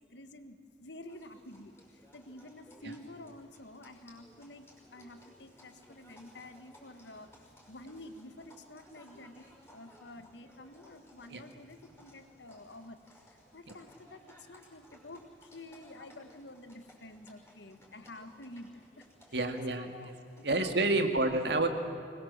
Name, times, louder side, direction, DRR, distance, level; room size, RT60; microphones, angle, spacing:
voice 1, 0.1-18.7 19.0-19.4 19.7-20.1 20.4-21.2, left 1 dB, 90° left, 9 dB, 1.7 m, -50 dB
Livestock farm animals working animals, 1.1-21.0, equal, 15° left, 5.5 m, -60 dB
voice 2, 19.3-20.1 20.4-21.7, right 2 dB, 75° right, 6 dB, 2.2 m, -29 dB
25.0 x 21.0 x 7.5 m, 2.6 s
head